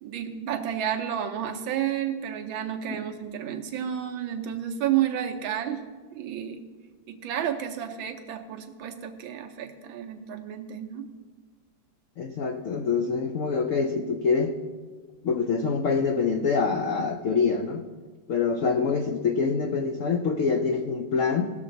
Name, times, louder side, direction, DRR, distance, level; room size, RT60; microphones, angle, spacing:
voice 1, 0.0-5.8 6.1-6.6 7.1-11.1, right 10 dB, 80° right, 5 dB, 1.6 m, -31 dB
voice 2, 12.2-14.5 15.2-17.8 18.3-21.5, left 5 dB, 75° left, 4 dB, 0.7 m, -25 dB
18.0 x 6.7 x 3.9 m, 1.4 s
omnidirectional pair, 2.1 m